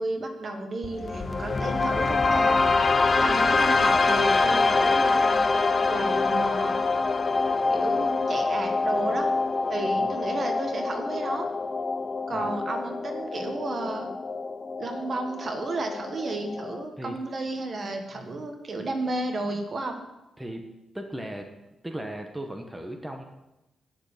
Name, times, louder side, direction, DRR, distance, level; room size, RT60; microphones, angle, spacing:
voice 1, 0.0-2.6 3.1-5.4 5.9-6.8 7.7-9.3 9.7-11.5 12.3-14.1 14.8-20.0, right 2 dB, 45° right, 5 dB, 1.5 m, -32 dB
sound 1, 0.8-16.8, left 3 dB, 35° left, 0.6 m, -25 dB
voice 2, 20.4-20.7 20.9-21.5 21.8-23.2, right 1 dB, 10° right, 3 dB, 1.1 m, -36 dB
9.9 x 6.6 x 6.7 m, 0.96 s
cardioid pair, 105°, 0 cm